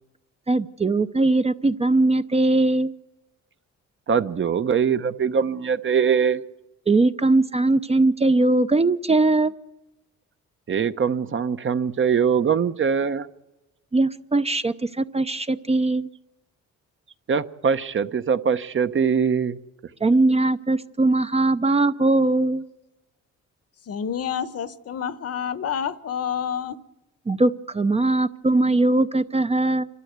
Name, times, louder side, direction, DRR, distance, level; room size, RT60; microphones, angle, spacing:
voice 1, 0.5-2.9 6.9-9.5 13.9-16.1 20.0-22.6 27.3-29.9, right 2 dB, 20° right, 11 dB, 0.7 m, -20 dB
voice 2, 4.1-6.4 10.7-13.3 17.3-19.6, right 6 dB, 40° right, 11 dB, 1.0 m, -22 dB
voice 3, 23.9-26.8, left 8 dB, 55° left, 15 dB, 1.0 m, -28 dB
27.5 x 12.5 x 8.2 m, 1.0 s
cardioid pair, 90°, 30 cm